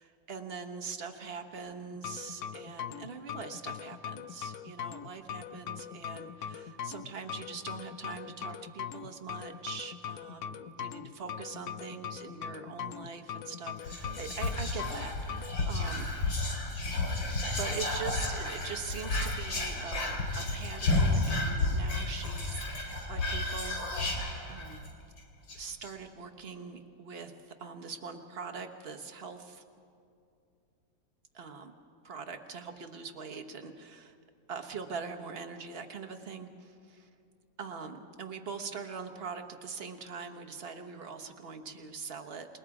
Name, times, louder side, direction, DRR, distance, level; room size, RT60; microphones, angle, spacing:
voice 1, 0.0-16.1 17.6-23.9 24.5-24.8 25.5-29.6 31.3-31.7 32.0-34.2 34.5-37.1 37.6-42.5, right 5 dB, 40° right, 4 dB, 1.2 m, -42 dB
sound 1, 1.9-15.6, left 8 dB, 65° left, 1.0 m, -41 dB
Whispering, 13.8-24.9 25.2-25.3 25.5-25.9, left 2 dB, 90° left, 3.5 m, -32 dB
28.0 x 20.5 x 4.9 m, 2.5 s
omnidirectional pair, 2.0 m